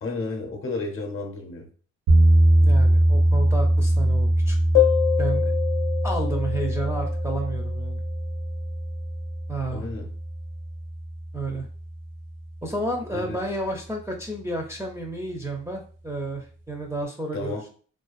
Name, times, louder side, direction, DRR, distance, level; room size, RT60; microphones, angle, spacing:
voice 1, 0.0-1.7 9.7-10.1 13.1-13.4 17.3-17.7, left 3 dB, 45° left, 0.7 m, -32 dB
sound 1, 2.1-12.1, right 1 dB, 90° right, 0.9 m, -22 dB
voice 2, 2.6-4.6 5.2-5.5 6.0-8.0 9.5-9.8 11.3-11.7 12.6-17.7, right 2 dB, 10° right, 0.4 m, -31 dB
sound 2, 4.7-8.0, left 14 dB, 85° left, 0.7 m, -26 dB
2.5 x 2.3 x 2.3 m
cardioid pair, 90°, 30 cm